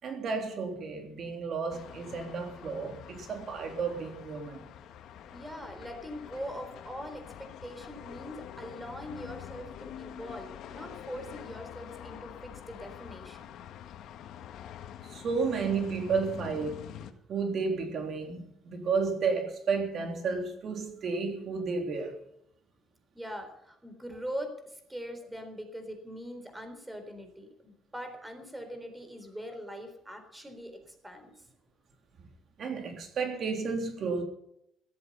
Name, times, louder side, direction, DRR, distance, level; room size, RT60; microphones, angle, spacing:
voice 1, 0.0-4.6 15.1-16.9 17.3-22.2 32.6-34.2, right 4 dB, 55° right, 3.4 m, -32 dB
sound 1, 1.7-17.1, left 10 dB, 75° left, 1.9 m, -46 dB
voice 2, 5.3-13.5 23.1-31.3, equal, 10° right, 4.0 m, -42 dB
17.5 x 14.0 x 5.6 m
cardioid pair, 120°, 0 cm